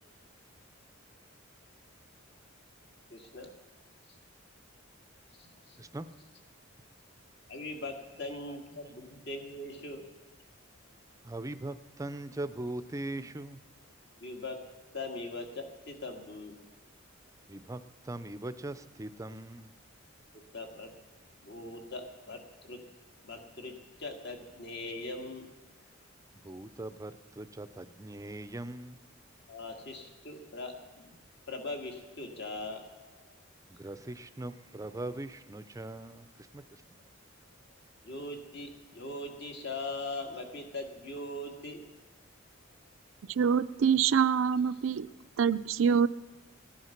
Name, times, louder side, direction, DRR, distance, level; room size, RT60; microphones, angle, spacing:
voice 1, 3.1-3.5 4.1-4.2 5.4-5.8 7.5-10.1 14.2-14.6 14.9-16.6 20.3-20.9 21.4-22.8 23.2-23.7 24.0-25.5 29.5-31.1 31.5-33.4 38.0-41.8, left 2 dB, 55° left, 3 dB, 2.0 m, -41 dB
voice 2, 11.2-13.6 17.5-19.7 26.4-29.0 33.7-36.8, right 2 dB, 15° right, 12 dB, 0.5 m, -40 dB
voice 3, 43.3-45.1 45.4-46.1, right 7 dB, 70° right, 15 dB, 0.4 m, -25 dB
17.0 x 11.0 x 5.8 m, 1.2 s
head